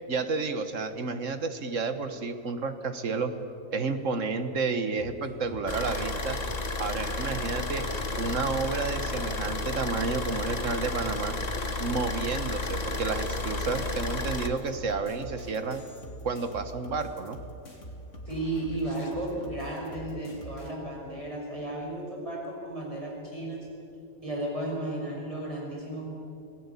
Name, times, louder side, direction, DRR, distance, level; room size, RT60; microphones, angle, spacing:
voice 1, 0.1-3.3 3.7-6.4 6.8-11.4 11.8-15.8 16.2-17.4, right 4 dB, 65° right, 9 dB, 1.8 m, -31 dB
sound 1, 5.0-13.2, equal, ahead, 3.1 m, -47 dB
Car / Idling, 5.7-14.5, left 2 dB, 30° left, 1.4 m, -32 dB
sound 2, 12.5-20.7, equal, 60° left, 2.9 m, -44 dB
voice 2, 18.3-23.7 24.2-26.0, right 1 dB, 25° right, -2 dB, 5.7 m, -34 dB
27.0 x 17.0 x 8.5 m, 2.7 s
omnidirectional pair, 1.4 m